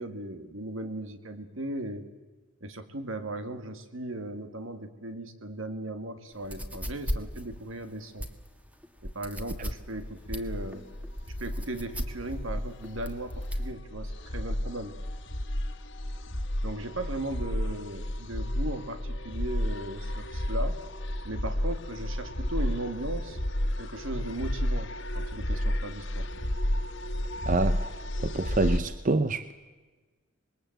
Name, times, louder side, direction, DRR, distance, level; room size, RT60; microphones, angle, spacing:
voice 1, 0.0-2.1 2.6-8.3 9.0-10.9 11.4-15.0 16.6-20.8 21.2-23.4 23.8-26.3, right 1 dB, 75° right, 8 dB, 2.1 m, -37 dB
sound 1, 6.3-13.7, equal, 5° right, 1.5 m, -37 dB
sound 2, 9.9-28.8, left 1 dB, 60° left, 1.8 m, -32 dB
voice 2, 27.5-27.8 28.2-29.5, right 2 dB, 40° right, 12 dB, 0.7 m, -26 dB
26.0 x 21.0 x 7.9 m, 1.3 s
head